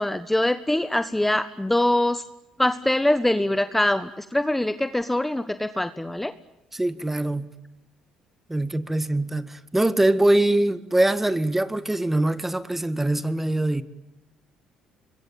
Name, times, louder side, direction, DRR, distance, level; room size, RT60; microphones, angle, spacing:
voice 1, 0.0-2.2 2.6-6.3, left 1 dB, 10° left, 1.3 m, -23 dB
voice 2, 6.7-7.5 8.5-13.8, right 1 dB, 10° right, 1.9 m, -23 dB
26.0 x 22.5 x 9.0 m
supercardioid pair, 65°, 2 cm